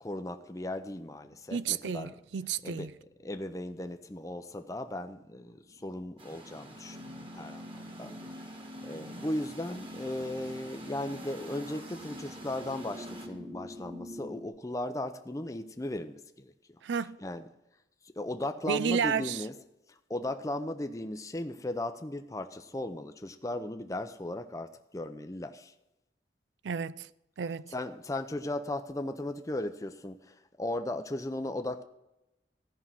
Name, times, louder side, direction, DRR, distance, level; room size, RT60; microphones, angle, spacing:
voice 1, 0.0-2.1 2.6-2.9 3.2-8.5 8.8-16.5 17.2-17.4 18.0-19.5 20.1-25.7 27.7-31.8, left 1 dB, 20° left, 0.6 m, -37 dB
sound 1, 1.2-4.4 4.8-14.5, left 1 dB, 65° right, 2.0 m, -47 dB
voice 2, 1.5-2.9 16.8-17.2 18.7-19.4 26.6-27.1 27.4-27.7, right 7 dB, 90° right, 0.4 m, -31 dB
sound 2, 6.2-13.3, right 1 dB, 30° right, 1.7 m, -48 dB
14.0 x 5.5 x 7.4 m
head